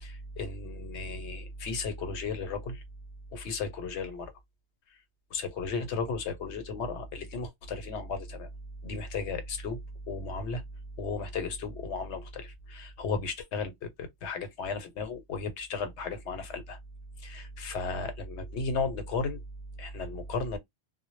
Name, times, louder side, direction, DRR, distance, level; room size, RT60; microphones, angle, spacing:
voice 1, 0.0-2.8 3.3-4.3 5.3-8.5 8.8-9.8 10.1-10.6 11.0-16.8 17.2-19.4 19.8-20.6, left 4 dB, 75° left, 0.9 m, -35 dB
2.0 x 2.0 x 3.0 m
omnidirectional pair, 1.2 m